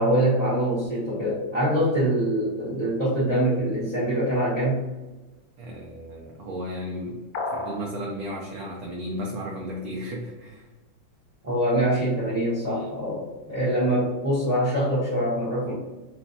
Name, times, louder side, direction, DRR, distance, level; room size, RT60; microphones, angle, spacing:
voice 1, 0.0-4.8 11.4-15.7, right 1 dB, 25° right, -8 dB, 1.0 m, -24 dB
voice 2, 5.6-7.2 7.5-10.7, equal, 65° right, -2 dB, 1.0 m, -34 dB
sound 1, 7.3-7.9, left 3 dB, 70° left, 0.9 m, -30 dB
4.2 x 3.1 x 2.7 m, 1.1 s
omnidirectional pair, 2.0 m